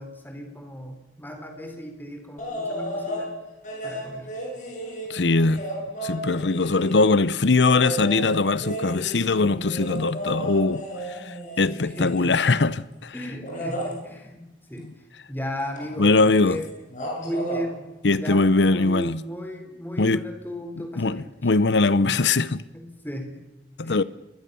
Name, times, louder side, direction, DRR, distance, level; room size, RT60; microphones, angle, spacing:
voice 1, 0.0-3.3 3.8-4.3 11.7-12.3 13.1-14.9 15.3-16.7 17.2-17.8 18.1-21.3 22.0-22.1 22.7-23.4 23.8-24.0, equal, 10° left, 4.1 m, -35 dB
sound 1, 2.4-3.3 3.6-7.2 7.7-12.6 13.4-13.9 15.8-15.9 16.2-16.6 16.9-17.6 19.0-19.1, right 1 dB, 45° left, 7.7 m, -33 dB
voice 2, 5.1-5.6 6.0-13.1 16.0-16.6 18.0-19.2 20.0-20.2 21.0-22.6 23.8-24.0, left 3 dB, 80° left, 0.8 m, -21 dB
27.5 x 22.5 x 7.0 m
head